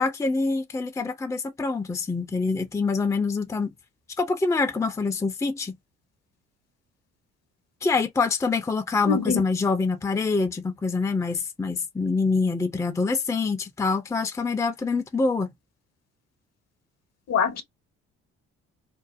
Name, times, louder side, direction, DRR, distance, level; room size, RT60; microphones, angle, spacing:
voice 1, 0.0-3.7 4.2-5.7 7.8-15.5, left 4 dB, 10° left, 0.5 m, -25 dB
voice 2, 9.1-9.4 17.3-17.6, left 6 dB, 55° left, 0.9 m, -23 dB
2.6 x 2.1 x 2.4 m
supercardioid pair, 65°, 30 cm